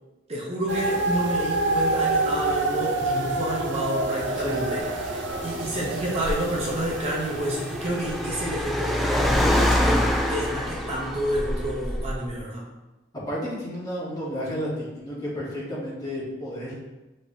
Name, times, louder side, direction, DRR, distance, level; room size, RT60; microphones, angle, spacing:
voice 1, 0.3-12.6, equal, 35° right, -4 dB, 0.8 m, -29 dB
sound 1, 0.7-8.5, right 2 dB, 80° right, 0.5 m, -28 dB
Car, 4.4-12.3, equal, ahead, 0.4 m, -27 dB
voice 2, 13.3-16.7, equal, 20° left, -7 dB, 1.3 m, -32 dB
5.7 x 3.1 x 2.7 m, 1.1 s
head